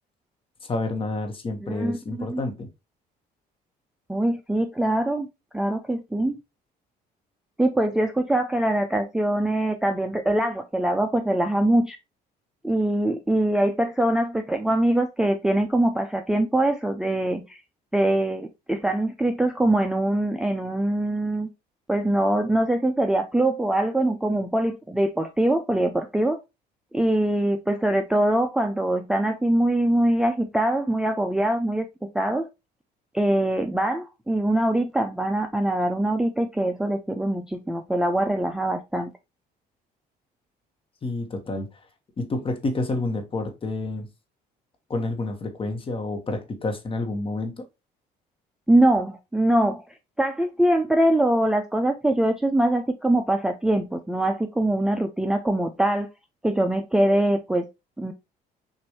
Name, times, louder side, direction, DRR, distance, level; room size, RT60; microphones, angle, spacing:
voice 1, 0.7-2.7 41.0-41.7 42.2-44.1 44.9-47.6, left 2 dB, 30° left, 1.2 m, -29 dB
voice 2, 1.6-2.4 4.1-5.3 5.5-6.4 7.6-12.0 12.6-17.6 17.9-21.5 21.9-26.4 26.9-31.9 32.1-32.5 33.1-39.1 48.7-49.8 50.2-56.1 56.4-57.7 58.0-58.1, right 1 dB, 5° right, 0.4 m, -23 dB
6.3 x 2.6 x 3.0 m
cardioid pair, 110°, 17 cm